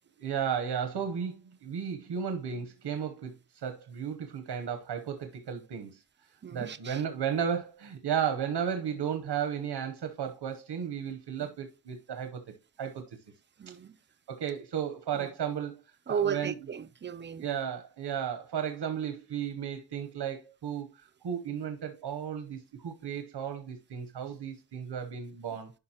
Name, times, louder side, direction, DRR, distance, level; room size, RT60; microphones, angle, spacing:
voice 1, 0.2-6.0 6.5-12.4 12.8-13.2 14.3-15.8 16.1-16.5 17.4-20.9 21.2-25.7, right 8 dB, 90° right, 1.0 m, -34 dB
voice 2, 6.4-7.0 11.4-11.5 13.6-14.0 15.1-15.3 16.1-17.4, right 7 dB, 30° right, 0.4 m, -35 dB
11.0 x 5.2 x 2.9 m
wide cardioid pair, 175°, 40 cm